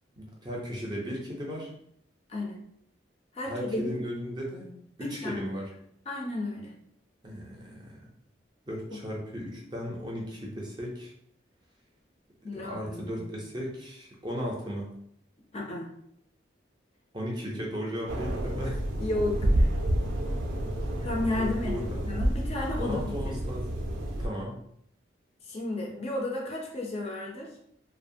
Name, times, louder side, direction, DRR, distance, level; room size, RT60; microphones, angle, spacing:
voice 1, 0.2-1.7 3.4-4.7 5.0-5.7 7.2-8.1 8.7-11.1 12.5-14.8 17.1-18.8 20.5-21.1 21.4-22.1 22.8-23.7 24.2-24.6, equal, 25° right, -2 dB, 0.5 m, -36 dB
voice 2, 3.3-3.9 5.0-5.4 6.1-6.7 8.9-9.0 12.4-13.2 15.5-15.9 19.0-19.7 21.0-23.4 25.5-27.5, left 2 dB, 35° left, -1 dB, 0.4 m, -33 dB
sound 1, 18.1-24.3, right 1 dB, 85° right, 0.4 m, -29 dB
2.7 x 2.1 x 2.6 m, 0.70 s
head